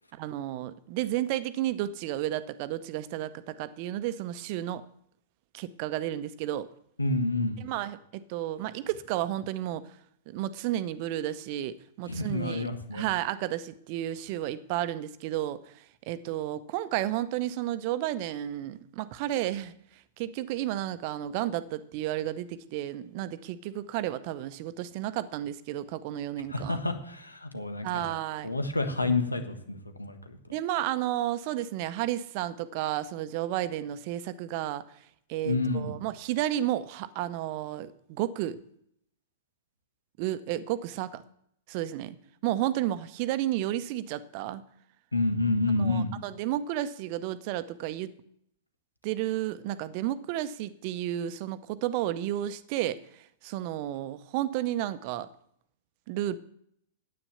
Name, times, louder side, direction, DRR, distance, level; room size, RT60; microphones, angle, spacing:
voice 1, 0.1-4.8 5.5-6.7 7.6-9.8 10.3-15.7 16.1-19.7 20.2-26.8 27.8-28.5 30.5-34.8 35.3-38.6 40.2-41.2 41.7-42.2 42.4-44.6 45.8-48.1 49.0-55.3 56.1-56.4, right 13 dB, 45° right, 15 dB, 0.7 m, -32 dB
voice 2, 7.0-7.6 12.0-13.0 26.5-28.1 28.4-30.4 35.4-35.9 45.1-46.1, left 2 dB, 85° left, 7 dB, 1.4 m, -29 dB
9.9 x 8.8 x 6.9 m, 0.70 s
figure-of-eight pair, 100°, 0 cm